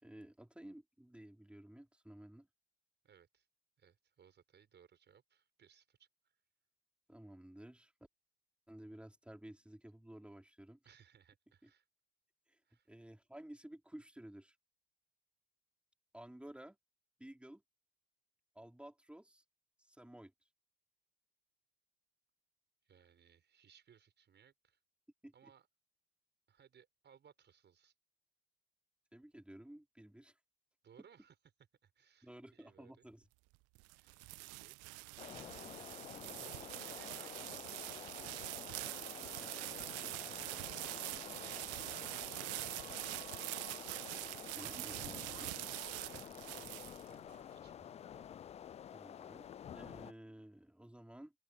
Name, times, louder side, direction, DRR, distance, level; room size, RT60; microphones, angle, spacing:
voice 1, 0.0-2.5 7.1-7.9 8.7-10.8 11.6-11.7 12.5-12.6 12.9-14.6 16.1-16.8 17.2-17.6 18.5-19.4 19.8-20.3 25.2-25.3 29.1-30.4 32.2-33.3 44.5-45.6 48.9-51.3, right 1 dB, 5° right, 4.1 m, -54 dB
voice 2, 3.0-3.5 3.8-6.4 10.8-11.9 12.6-12.9 22.8-24.8 25.3-25.7 26.5-27.9 30.8-31.4 31.8-33.1 33.9-36.0 36.3-38.2 38.8-39.6 39.9-41.0 41.3-42.0 42.4-43.2 46.0-48.3, right 8 dB, 35° right, 6.2 m, -65 dB
sound 1, 33.5-47.4, right 24 dB, 55° right, 0.9 m, -44 dB
sound 2, 35.2-50.1, left 9 dB, 20° left, 0.4 m, -50 dB
open air
figure-of-eight pair, 60°, 30 cm